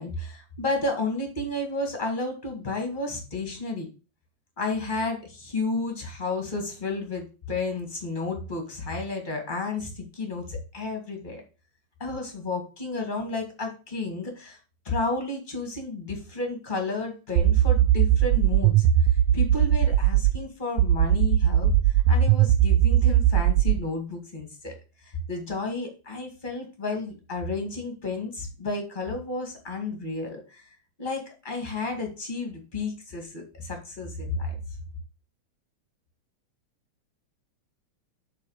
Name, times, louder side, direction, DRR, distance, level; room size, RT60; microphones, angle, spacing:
voice 1, 0.0-3.9 4.6-11.4 12.0-14.6 14.8-18.9 19.3-24.7 25.0-30.7 31.0-34.6, left 3 dB, 20° left, 3 dB, 1.4 m, -32 dB
sound 1, 17.4-20.4 20.8-23.8, right 11 dB, 90° right, 1.5 m, -19 dB
7.4 x 4.3 x 6.4 m, 0.33 s
omnidirectional pair, 3.5 m